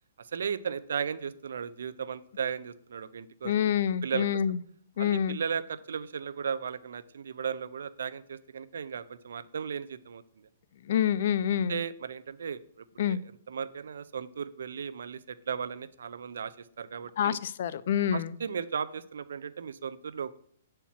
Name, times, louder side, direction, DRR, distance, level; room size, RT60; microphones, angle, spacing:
voice 1, 0.2-3.5 4.0-4.4 5.0-10.5 11.7-13.2 13.5-17.4 18.1-20.4, right 7 dB, 80° right, 0.5 m, -36 dB
voice 2, 3.4-4.6 5.0-5.4 10.9-11.8 13.0-13.2 17.2-18.3, left 9 dB, 60° left, 0.5 m, -27 dB
8.4 x 4.5 x 7.2 m
hypercardioid pair, 150°, 0 cm